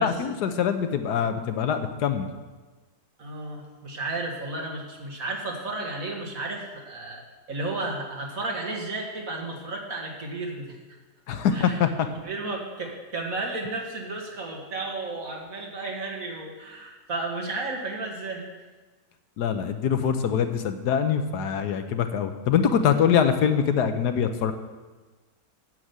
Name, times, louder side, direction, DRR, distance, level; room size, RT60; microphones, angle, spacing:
voice 1, 0.0-2.3 11.3-11.9 19.4-24.5, left 7 dB, 85° left, 8 dB, 1.4 m, -24 dB
voice 2, 3.2-7.2 7.5-10.8 11.5-18.5, right 2 dB, 55° right, -1 dB, 2.3 m, -33 dB
9.2 x 7.5 x 8.0 m, 1.3 s
omnidirectional pair, 1.7 m